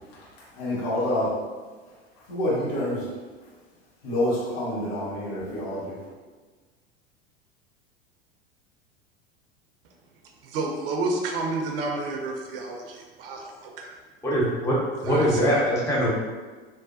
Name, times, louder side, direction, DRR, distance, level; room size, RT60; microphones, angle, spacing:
voice 1, 0.5-1.4 2.3-3.1 4.0-6.0, left 1 dB, 60° left, -8 dB, 1.4 m, -27 dB
voice 2, 10.4-14.0 15.0-15.7, right 3 dB, 60° right, 1 dB, 0.6 m, -30 dB
voice 3, 14.2-16.1, equal, 10° left, -5 dB, 0.6 m, -23 dB
3.1 x 2.0 x 2.6 m, 1.4 s
figure-of-eight pair, 85°, 32 cm